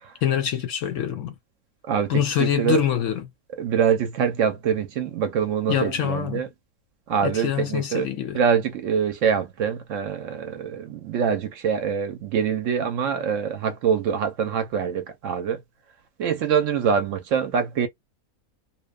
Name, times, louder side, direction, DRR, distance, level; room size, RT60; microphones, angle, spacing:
voice 1, 0.2-1.3 2.1-3.3 5.7-6.4 7.2-8.4, left 9 dB, 70° left, 0.8 m, -25 dB
voice 2, 1.8-2.8 3.6-6.5 7.1-8.1 8.3-15.6 16.2-17.9, right 7 dB, 70° right, 0.8 m, -24 dB
2.8 x 2.2 x 2.2 m
omnidirectional pair, 1.6 m